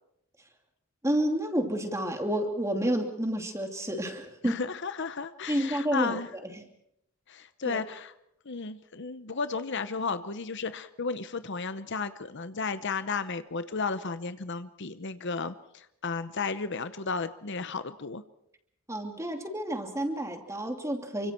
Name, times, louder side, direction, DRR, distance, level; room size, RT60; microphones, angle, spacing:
voice 1, 1.0-4.6 5.5-6.2 6.4-6.6 7.6-7.8 18.9-21.3, equal, 15° right, 4 dB, 2.8 m, -30 dB
voice 2, 4.4-6.3 7.3-8.1 8.5-18.2, left 4 dB, 55° left, 12 dB, 0.9 m, -33 dB
28.5 x 25.0 x 4.5 m, 0.78 s
head